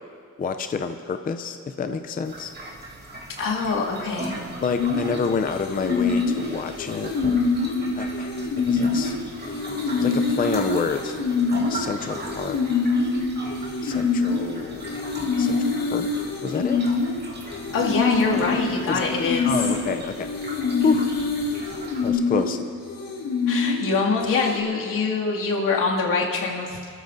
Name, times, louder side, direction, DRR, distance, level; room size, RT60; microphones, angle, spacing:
voice 1, 0.4-2.5 4.6-7.1 7.9-9.1 10.0-11.1 11.7-12.6 13.8-15.0 15.4-15.6 15.9-16.1 16.4-16.8 18.9-19.1 19.4-20.3 20.8-21.1 22.0-22.6, left 5 dB, 30° left, 7 dB, 0.5 m, -28 dB
sound 1, 2.2-22.1, right 2 dB, 30° right, 2.3 m, -38 dB
voice 2, 3.4-4.4 17.7-19.5 23.5-26.8, left 4 dB, 80° left, -3 dB, 2.4 m, -24 dB
sound 2, 4.8-24.6, left 4 dB, 55° left, 1.9 m, -25 dB
27.0 x 13.5 x 2.6 m, 2.4 s
wide cardioid pair, 175°, 32 cm